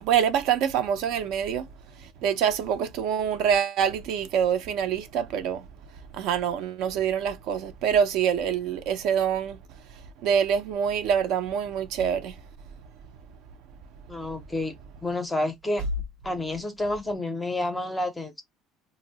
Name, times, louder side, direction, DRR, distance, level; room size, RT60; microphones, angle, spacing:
voice 1, 0.0-1.7 2.2-5.6 6.1-9.6 10.2-12.3, right 8 dB, 60° right, 0.4 m, -25 dB
voice 2, 14.1-14.7 15.0-15.8 16.2-18.4, left 1 dB, 5° left, 0.5 m, -29 dB
2.6 x 2.0 x 3.8 m
cardioid pair, 175°, 0 cm